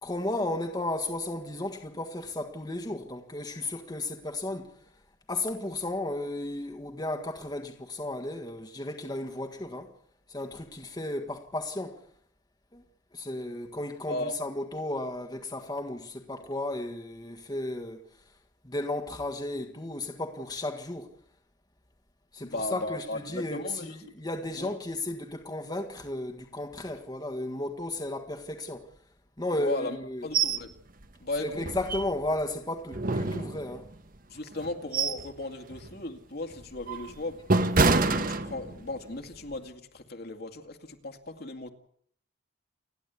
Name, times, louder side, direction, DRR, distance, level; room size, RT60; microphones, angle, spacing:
voice 1, 0.0-4.7 5.3-9.9 10.3-12.0 12.7-12.8 13.1-18.0 18.6-21.1 22.3-28.9 29.4-30.2 31.4-33.9, left 1 dB, 20° left, 1.6 m, -34 dB
voice 2, 22.4-24.0 24.6-24.7 29.5-30.7 31.2-31.7 34.3-37.4 37.9-41.7, left 2 dB, 55° left, 2.3 m, -36 dB
sound 1, 30.3-30.6 31.0-31.1 31.6-32.4 32.9-33.9 34.5-35.3 35.7-36.0 36.5-39.0 39.3-39.5, right 3 dB, 50° right, 1.4 m, -27 dB
29.5 x 11.0 x 8.4 m
head